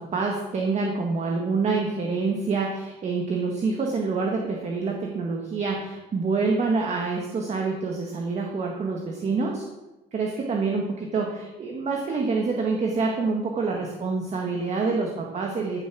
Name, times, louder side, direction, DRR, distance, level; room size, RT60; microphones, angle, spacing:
voice 1, 0.0-9.6 10.1-15.9, right 4 dB, 40° right, 1 dB, 1.8 m, -27 dB
16.0 x 7.3 x 6.2 m, 1.0 s
cardioid pair, 135°, 18 cm